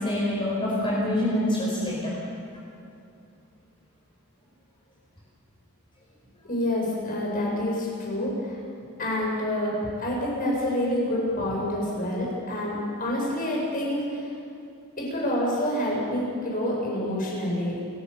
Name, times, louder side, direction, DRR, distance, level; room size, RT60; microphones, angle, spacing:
voice 1, 0.0-2.1, left 1 dB, 25° left, -4 dB, 4.9 m, -26 dB
voice 2, 6.4-8.6 9.0-14.2 15.0-17.8, left 1 dB, 40° left, -3 dB, 7.8 m, -27 dB
29.0 x 16.0 x 7.1 m, 2.5 s
head